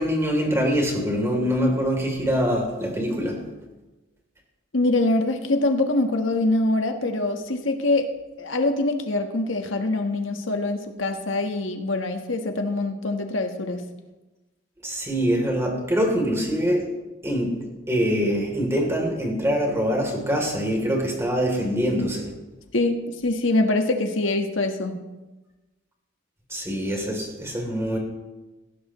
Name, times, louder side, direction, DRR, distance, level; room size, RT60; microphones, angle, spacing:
voice 1, 0.0-3.4 14.8-16.9 17.2-22.3 26.5-28.0, equal, 15° right, 1 dB, 3.1 m, -24 dB
voice 2, 4.7-8.1 8.4-13.8 22.7-24.9, left 2 dB, 80° left, 5 dB, 1.3 m, -24 dB
19.0 x 16.0 x 3.1 m, 1.1 s
head